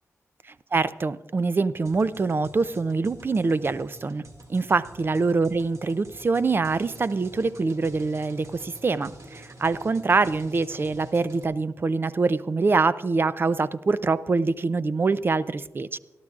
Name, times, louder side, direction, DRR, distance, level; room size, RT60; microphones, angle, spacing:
voice 1, 0.7-16.0, right 4 dB, 40° right, 16 dB, 0.5 m, -24 dB
sound 1, 1.8-11.4, right 1 dB, 65° right, 2.1 m, -47 dB
27.5 x 12.0 x 2.4 m, 1.1 s
cardioid pair, 70°, 6 cm